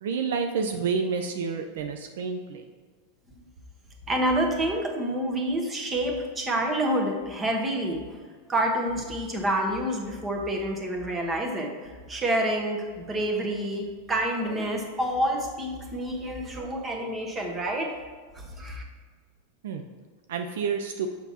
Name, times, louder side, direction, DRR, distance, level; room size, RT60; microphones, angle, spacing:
voice 1, 0.0-2.6 19.6-19.8 20.3-21.1, right 5 dB, 70° right, 6 dB, 0.4 m, -29 dB
voice 2, 4.1-8.2 8.5-17.9 18.3-18.8, right 1 dB, 20° right, 2 dB, 1.1 m, -28 dB
6.9 x 5.9 x 2.8 m, 1.5 s
hypercardioid pair, 100°, 0 cm